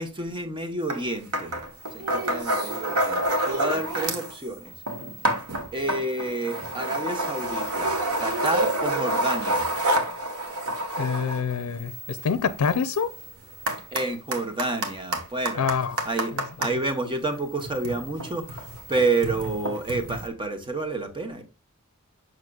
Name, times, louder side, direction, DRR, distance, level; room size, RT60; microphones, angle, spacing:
voice 1, 0.0-1.5 1.9-4.7 5.7-9.7 13.9-15.7 16.0-16.3 16.6-21.4, right 2 dB, 25° right, 1.0 m, -29 dB
sound 1, 0.9-1.0 1.3-4.4 4.7-16.7 17.5-20.3, right 1 dB, 80° right, 1.3 m, -29 dB
voice 2, 11.0-13.1 15.5-16.0 16.7-16.8, left 6 dB, 80° left, 0.5 m, -26 dB
6.5 x 6.3 x 2.3 m
head